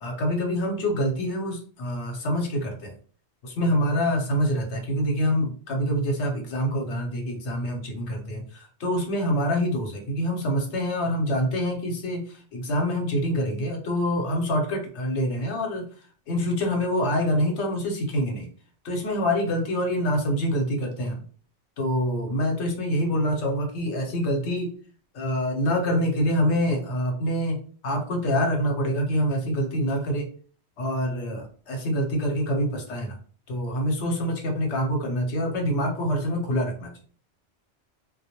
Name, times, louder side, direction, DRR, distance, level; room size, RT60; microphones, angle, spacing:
voice 1, 0.0-2.9 3.4-15.9 16.3-18.5 18.8-21.2 21.8-24.7 25.1-27.6 27.8-30.3 30.8-33.2 33.5-36.9, equal, 80° left, 2 dB, 1.0 m, -26 dB
2.2 x 2.1 x 2.8 m, 0.43 s
omnidirectional pair, 1.1 m